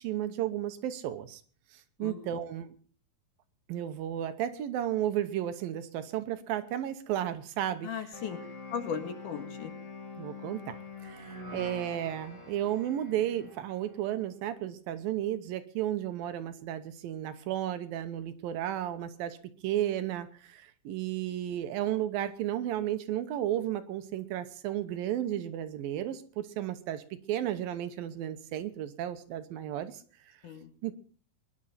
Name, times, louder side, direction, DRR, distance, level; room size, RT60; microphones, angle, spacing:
voice 1, 0.0-1.4 2.0-2.7 3.7-7.9 10.2-10.8 11.0-19.4 19.6-30.0 30.8-30.9, right 11 dB, 75° right, 10 dB, 2.7 m, -33 dB
voice 2, 2.0-2.4 7.8-8.4 8.7-9.7 30.4-30.7, left 7 dB, 65° left, 6 dB, 3.0 m, -37 dB
sound 1, 8.1-14.1, left 3 dB, 10° left, 1.8 m, -45 dB
22.5 x 11.0 x 4.2 m, 0.42 s
omnidirectional pair, 4.2 m